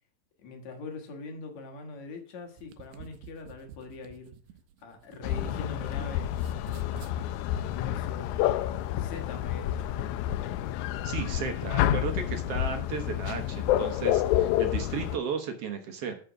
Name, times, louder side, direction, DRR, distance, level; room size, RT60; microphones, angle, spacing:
voice 1, 0.4-4.3 4.8-6.3 6.9-8.6 9.0-10.2, left 3 dB, 60° left, 2.6 m, -43 dB
sound 1, 2.4-6.0 6.3-7.2, right 7 dB, 80° right, 2.4 m, -49 dB
sound 2, 5.2-15.2, left 12 dB, 80° left, 1.8 m, -29 dB
voice 2, 11.0-16.2, right 6 dB, 60° right, 1.8 m, -34 dB
11.0 x 5.3 x 7.1 m
omnidirectional pair, 3.9 m